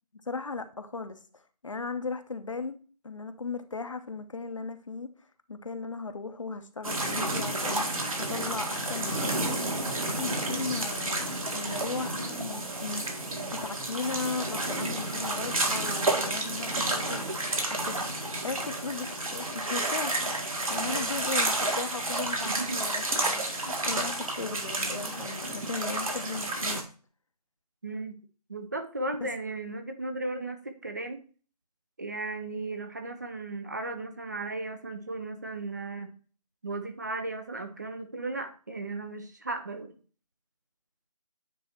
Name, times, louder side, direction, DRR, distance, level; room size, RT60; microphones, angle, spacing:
voice 1, 0.1-2.8 3.0-5.1 5.5-9.6 10.0-13.1 13.6-17.4 17.7-18.1 18.4-20.3 20.7-26.8, left 4 dB, 50° left, 0.9 m, -37 dB
sound 1, 6.8-26.8, right 2 dB, 60° right, 1.8 m, -31 dB
voice 2, 20.8-21.1 22.4-22.8 27.8-28.2 28.5-31.2 32.0-36.1 36.6-39.9, right 2 dB, 25° right, 0.6 m, -36 dB
9.2 x 3.2 x 4.3 m
figure-of-eight pair, 160°, 20 cm